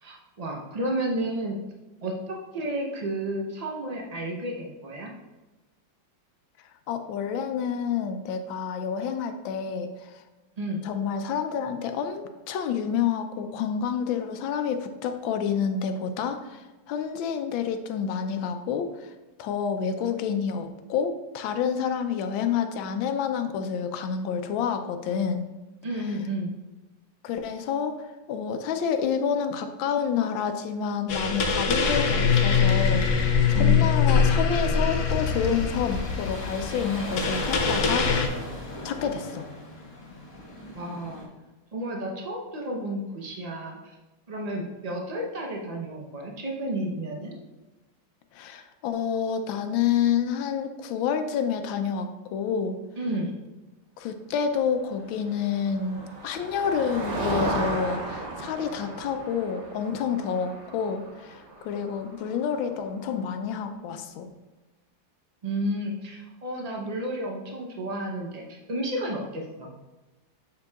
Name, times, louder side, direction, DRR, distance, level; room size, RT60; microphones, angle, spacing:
voice 1, 0.0-1.6 2.0-5.1 10.6-10.8 25.8-26.5 33.5-33.9 40.7-41.3 41.7-44.0 44.3-47.4 53.0-53.3 65.4-69.7, right 1 dB, 75° right, -1 dB, 0.3 m, -32 dB
voice 2, 6.9-10.2 10.8-19.1 19.4-25.5 27.2-38.3 38.8-39.5 48.3-52.8 54.0-64.3, left 7 dB, 85° left, 7 dB, 1.4 m, -29 dB
sound 1, 31.1-38.3, left 5 dB, 70° left, 0.7 m, -23 dB
sound 2, 33.1-41.3, left 1 dB, 15° left, 0.9 m, -38 dB
Motor vehicle (road), 55.3-63.1, right 2 dB, 50° right, 1.0 m, -35 dB
6.9 x 6.6 x 2.3 m, 1.1 s
omnidirectional pair, 2.1 m